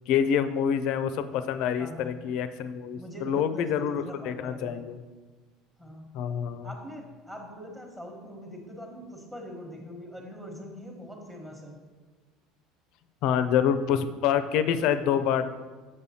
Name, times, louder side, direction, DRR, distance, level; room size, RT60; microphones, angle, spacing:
voice 1, 0.1-5.0 6.1-6.7 13.2-15.5, left 8 dB, 60° left, 11 dB, 0.4 m, -26 dB
voice 2, 1.8-2.1 3.0-4.7 5.8-6.0 6.6-11.7, equal, 10° right, 0 dB, 1.1 m, -42 dB
7.1 x 6.4 x 2.8 m, 1.4 s
cardioid pair, 145°, 0 cm